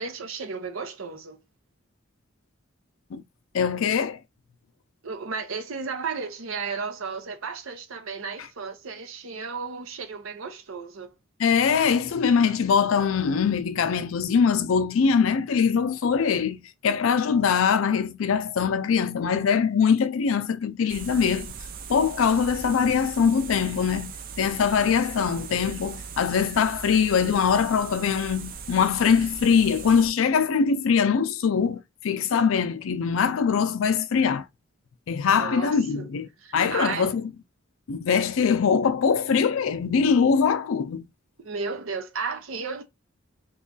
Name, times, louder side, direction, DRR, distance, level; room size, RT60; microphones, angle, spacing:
voice 1, 0.0-1.4 5.0-11.1 35.3-36.1 36.4-37.2 41.4-42.8, right 5 dB, 90° right, 0.7 m, -34 dB
voice 2, 3.5-4.2 11.4-21.5 21.9-34.5 35.1-37.3 37.9-41.1, left 6 dB, 85° left, 0.4 m, -22 dB
sound 1, 20.9-30.1, right 6 dB, 45° right, 0.4 m, -39 dB
3.0 x 2.3 x 3.8 m
head